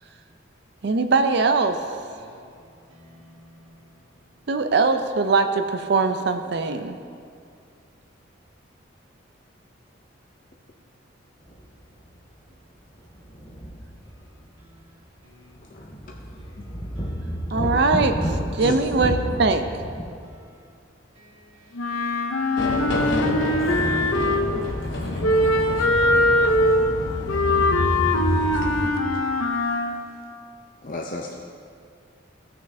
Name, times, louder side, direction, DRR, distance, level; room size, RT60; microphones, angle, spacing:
voice 1, 0.8-1.8 4.5-7.0 17.5-18.1 18.5-19.7, right 4 dB, 55° right, 7 dB, 0.4 m, -21 dB
voice 2, 2.1-4.5 14.0-14.2 14.6-15.9 16.4-17.8 20.0-20.8 21.1-22.1 23.1-24.5 24.8-27.2, equal, 85° right, -3 dB, 1.7 m, -44 dB
sound 1, 11.5-11.6 12.0-12.1 13.0-14.4 14.8-14.9 15.4-20.2, equal, 15° left, 1.4 m, -31 dB
voice 3, 15.7-16.2 16.6-16.7 18.6-18.8 30.8-31.3, left 2 dB, 45° left, 0 dB, 0.5 m, -33 dB
Wind instrument woodwind instrument, 21.7-24.7 25.2-30.1, left 1 dB, 90° left, 0.6 m, -22 dB
sound 2, 22.6-28.9, left 1 dB, 65° left, 1.0 m, -28 dB
16.0 x 6.3 x 2.7 m, 2.4 s
head